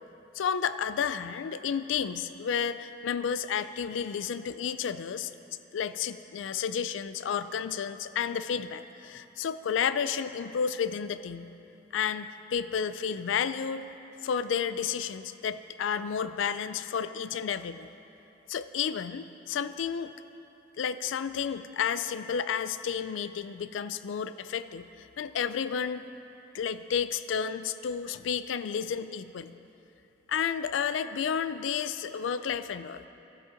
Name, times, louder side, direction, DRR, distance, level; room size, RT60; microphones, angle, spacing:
voice 1, 0.3-5.3 5.7-11.5 11.9-13.9 14.2-17.9 18.5-20.1 20.8-26.0 26.5-29.6 30.3-33.1, left 7 dB, 80° left, 13 dB, 0.4 m, -31 dB
12.5 x 7.3 x 5.1 m, 3.0 s
head